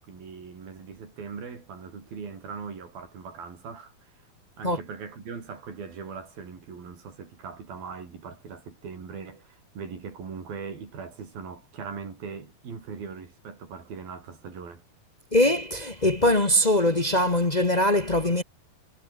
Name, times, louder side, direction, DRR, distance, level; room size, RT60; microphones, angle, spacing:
voice 1, 0.1-4.1 4.6-14.8, right 5 dB, 90° right, 6.9 m, -40 dB
voice 2, 15.3-18.4, left 1 dB, 90° left, 0.3 m, -22 dB
omnidirectional pair, 4.1 m